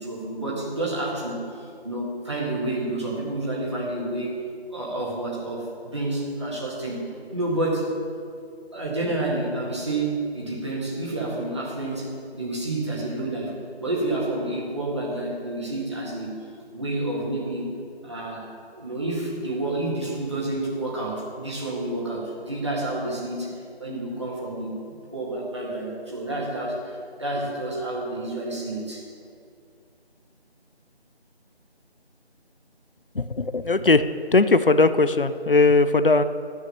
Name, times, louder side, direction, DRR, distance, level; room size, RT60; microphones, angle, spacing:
voice 1, 0.0-4.4 4.7-7.9 8.7-16.4 16.7-17.7 18.0-24.8 25.1-29.1, right 2 dB, 25° right, -5 dB, 1.8 m, -29 dB
voice 2, 33.1-34.0 34.3-36.2, left 3 dB, 55° left, 12 dB, 0.6 m, -19 dB
14.0 x 6.4 x 6.9 m, 2.3 s
figure-of-eight pair, 170°, 32 cm